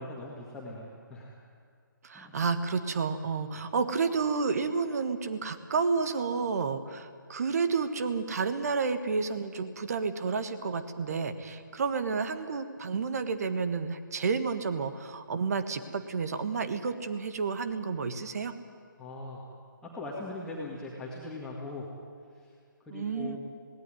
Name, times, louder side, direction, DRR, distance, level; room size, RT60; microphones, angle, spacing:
voice 1, 0.0-1.3 2.1-2.4 19.0-19.4 19.8-21.9 22.3-22.5 22.9-23.4, left 2 dB, 5° left, -5 dB, 2.1 m, -40 dB
voice 2, 2.0-18.5 22.9-23.4, right 5 dB, 45° right, 10 dB, 1.5 m, -30 dB
18.5 x 17.5 x 9.8 m, 2.1 s
figure-of-eight pair, 150°, 11 cm